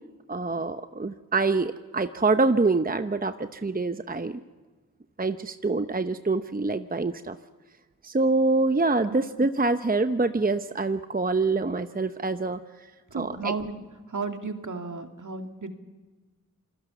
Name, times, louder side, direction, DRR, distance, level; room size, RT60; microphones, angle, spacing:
voice 1, 0.3-4.4 5.2-7.4 8.0-12.6 13.1-13.5, right 3 dB, 25° right, 10 dB, 0.8 m, -25 dB
voice 2, 13.1-15.7, right 4 dB, 60° right, 5 dB, 2.3 m, -34 dB
27.5 x 20.5 x 7.1 m, 1.3 s
cardioid pair, 40°, 34 cm